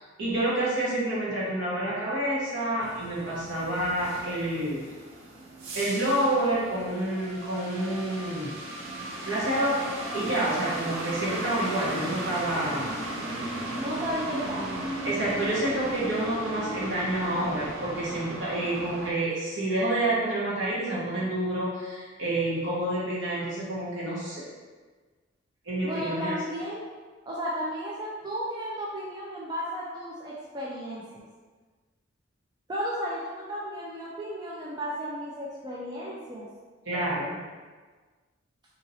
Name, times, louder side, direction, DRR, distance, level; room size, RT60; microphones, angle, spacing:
voice 1, 0.0-4.8 5.7-8.5 9.3-12.9 15.0-24.4 25.7-26.4 36.8-37.4, right 1 dB, 65° right, -8 dB, 1.1 m, -28 dB
sound 1, 2.8-19.1, right 1 dB, 80° right, 0.5 m, -36 dB
voice 2, 13.8-14.8 25.8-26.8 27.3-31.0 32.7-36.5, equal, 20° right, -6 dB, 0.3 m, -34 dB
2.8 x 2.7 x 2.7 m, 1.4 s
head